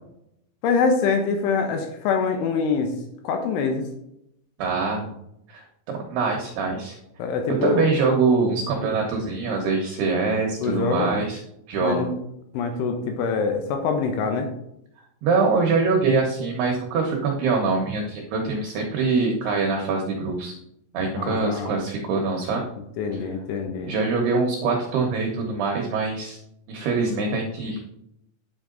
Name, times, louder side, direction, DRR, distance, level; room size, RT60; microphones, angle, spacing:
voice 1, 0.6-2.9 3.2-3.8 7.2-7.9 10.6-11.1 11.8-12.1 12.5-14.5 21.2-21.8 23.0-23.9, left 5 dB, 80° left, 5 dB, 3.3 m, -24 dB
voice 2, 4.6-5.1 5.5-7.0 7.6-11.4 11.7-12.1 15.2-20.5 20.9-22.7 23.8-26.4 26.7-27.8, right 4 dB, 70° right, 0 dB, 2.7 m, -24 dB
10.5 x 7.3 x 3.9 m, 0.79 s
omnidirectional pair, 5.6 m